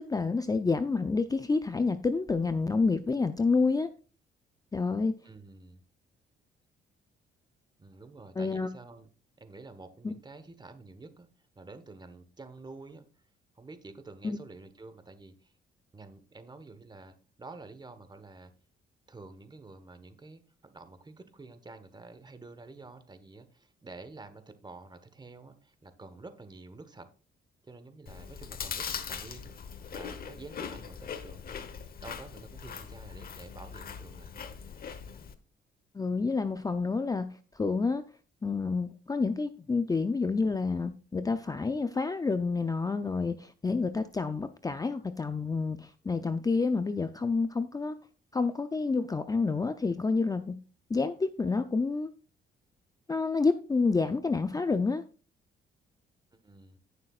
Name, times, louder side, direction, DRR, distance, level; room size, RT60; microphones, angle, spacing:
voice 1, 0.1-3.9 4.7-5.2 8.4-8.7 10.0-10.1 14.2-14.4 35.9-37.3 37.6-38.0 38.4-47.9 48.3-50.6 50.9-52.1 53.1-55.0, left 4 dB, 20° left, 0.5 m, -28 dB
voice 2, 5.2-5.8 7.8-9.1 9.4-11.3 11.5-13.1 13.5-15.5 15.9-18.5 19.1-27.1 27.6-29.6 29.9-34.6 56.4-56.8, right 3 dB, 20° right, 1.2 m, -49 dB
Chewing mastication, 28.1-35.4, left 7 dB, 50° left, 1.0 m, -41 dB
17.0 x 6.5 x 2.4 m
cardioid pair, 90°, 20 cm